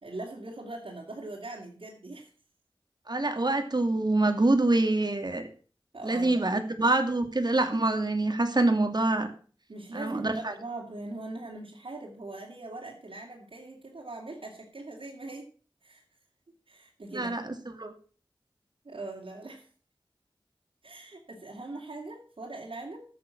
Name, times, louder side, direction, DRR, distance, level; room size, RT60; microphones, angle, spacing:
voice 1, 0.0-2.3 5.9-6.4 9.7-15.5 15.8-16.0 16.7-17.6 18.8-19.7 20.8-23.0, right 2 dB, 85° right, -2 dB, 2.8 m, -41 dB
voice 2, 3.1-5.5 6.0-9.3 9.9-10.5 17.1-17.9, right 2 dB, 50° right, 6 dB, 2.5 m, -26 dB
13.5 x 7.0 x 7.2 m, 0.41 s
wide cardioid pair, 45°, 9 cm